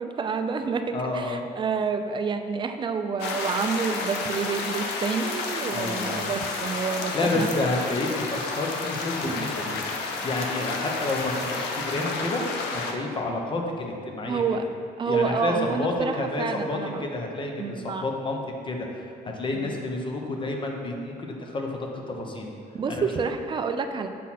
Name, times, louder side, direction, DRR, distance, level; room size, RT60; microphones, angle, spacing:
voice 1, 0.0-7.7 9.2-9.4 14.3-14.7 15.0-17.0 17.6-18.1 19.5-19.7 22.7-24.1, right 5 dB, 30° right, 7 dB, 0.4 m, -28 dB
voice 2, 0.9-1.5 5.7-6.3 7.1-9.8 10.2-12.4 12.7-14.4 15.0-22.5 22.9-23.0, left 2 dB, 30° left, 1 dB, 0.9 m, -30 dB
sound 1, 3.2-12.9, left 3 dB, 90° left, 0.7 m, -31 dB
7.3 x 3.9 x 4.2 m, 2.4 s
cardioid pair, 110°, 17 cm